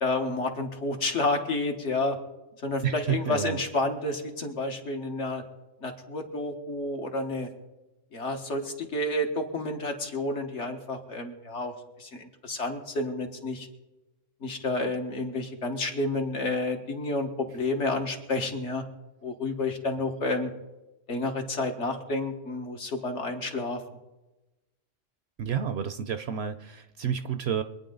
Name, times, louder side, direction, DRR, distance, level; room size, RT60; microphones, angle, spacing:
voice 1, 0.0-2.2 2.6-5.4 5.8-7.5 8.1-13.7 14.4-18.8 19.2-20.5 21.1-23.8, left 2 dB, 65° left, 4 dB, 1.8 m, -30 dB
voice 2, 2.8-3.6 25.4-27.6, right 8 dB, 65° right, 10 dB, 0.8 m, -30 dB
24.0 x 9.5 x 3.9 m, 1.0 s
omnidirectional pair, 1.3 m